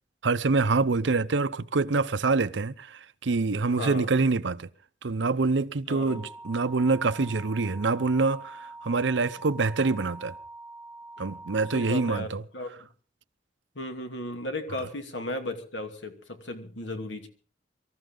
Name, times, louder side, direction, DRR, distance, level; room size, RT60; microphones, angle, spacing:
voice 1, 0.2-4.7 5.0-10.3 11.2-12.4 14.8-14.9, right 3 dB, 90° right, 0.7 m, -26 dB
voice 2, 3.7-4.1 5.9-6.2 11.2-11.3 11.7-12.7 13.8-17.3, left 1 dB, 90° left, 2.6 m, -35 dB
sound 1, 6.1-12.2, right 2 dB, 10° right, 1.1 m, -45 dB
24.0 x 14.0 x 3.9 m
head